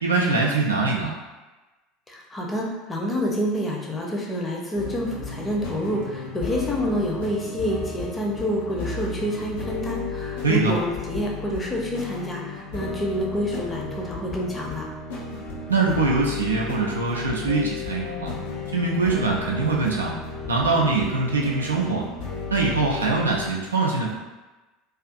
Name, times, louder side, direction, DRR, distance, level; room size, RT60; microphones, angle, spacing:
voice 1, 0.0-1.2 10.4-10.8 15.7-18.3 18.7-20.1 20.5-22.0 22.5-24.1, right 3 dB, 80° right, -2 dB, 0.4 m, -23 dB
voice 2, 2.1-14.9, equal, 20° left, -2 dB, 0.6 m, -28 dB
sound 1, 4.7-23.5, left 4 dB, 70° left, 0.5 m, -34 dB
2.5 x 2.4 x 2.5 m, 1.1 s
figure-of-eight pair, 70°, 0 cm